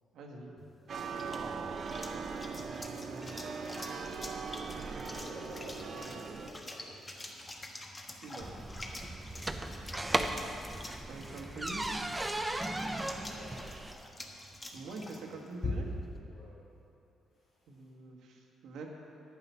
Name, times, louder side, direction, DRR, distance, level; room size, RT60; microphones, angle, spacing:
voice 1, 0.1-0.5 3.1-3.3 8.2-8.7 11.1-12.0 14.7-15.9 17.7-18.9, right 3 dB, 80° right, 0 dB, 1.5 m, -45 dB
sound 1, 0.6-16.1, left 2 dB, 25° left, 1.4 m, -46 dB
sound 2, 0.9-6.5, right 5 dB, 55° right, 0.8 m, -40 dB
voice 2, 1.4-1.7 3.4-3.7 5.1-7.1 13.2-13.8 16.3-16.7, equal, 80° left, -8 dB, 2.4 m, -50 dB
sound 3, 8.4-13.9, right 1 dB, 15° right, 0.7 m, -36 dB
10.5 x 8.8 x 5.6 m, 2.7 s
cardioid pair, 90°, 0 cm